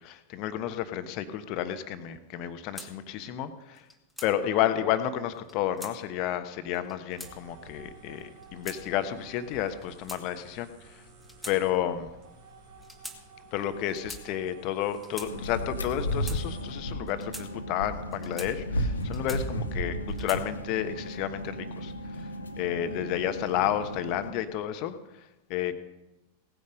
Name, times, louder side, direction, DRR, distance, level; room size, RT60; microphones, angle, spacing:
voice 1, 0.0-3.8 4.2-11.0 11.4-12.1 13.5-22.3 22.6-25.7, left 11 dB, 40° left, 10 dB, 1.2 m, -31 dB
sound 1, 2.8-2.9 3.7-4.3 5.3-5.9 6.7-7.3 8.2-8.8 9.6-10.6 11.2-11.6 11.8-12.1 12.8-13.2 13.9-14.2 14.9-15.3 16.0-16.4 17.1-17.5 18.1-18.5 19.0-19.6 20.1-20.4, left 1 dB, ahead, 2.1 m, -43 dB
sound 2, 7.1-16.8, right 3 dB, 55° right, 3.5 m, -52 dB
sound 3, 15.2-24.3, equal, 75° left, 1.3 m, -34 dB
17.5 x 9.6 x 5.3 m, 0.98 s
figure-of-eight pair, 90°, 0 cm